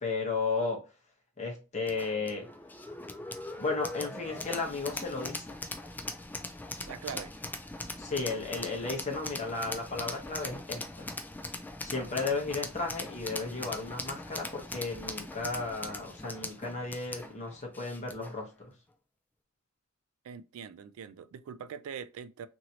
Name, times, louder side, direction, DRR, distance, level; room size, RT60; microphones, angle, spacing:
voice 1, 0.0-0.8 1.4-2.5 3.6-5.5 8.0-11.1 11.8-18.5, left 3 dB, 35° left, 1.0 m, -34 dB
sound 1, 1.9-18.4, left 2 dB, 10° left, 0.3 m, -41 dB
voice 2, 6.9-7.3 12.1-12.3 14.3-14.4 20.2-22.5, right 7 dB, 85° right, 0.3 m, -43 dB
3.0 x 2.7 x 2.8 m
head